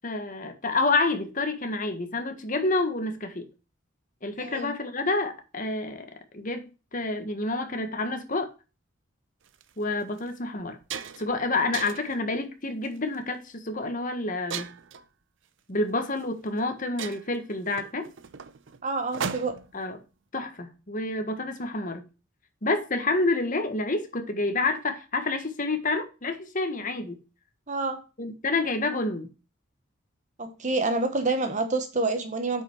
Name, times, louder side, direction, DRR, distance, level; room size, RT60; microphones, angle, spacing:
voice 1, 0.0-3.5 4.2-6.1 6.3-8.5 9.8-10.8 11.2-14.7 15.7-18.1 19.7-20.0 20.3-22.0 22.6-27.2 28.2-29.3, left 2 dB, 40° left, 1.5 m, -28 dB
voice 2, 4.4-4.7 18.8-19.5 27.7-28.0 30.4-32.6, right 3 dB, 35° right, 1.2 m, -27 dB
sound 1, 9.5-9.6 10.2-10.3 10.6-11.3 11.7-12.2 12.9-13.2 14.5-15.0 16.2-16.3 16.6-16.7 17.0-19.8, right 6 dB, 65° right, 0.6 m, -36 dB
8.3 x 5.5 x 4.6 m
head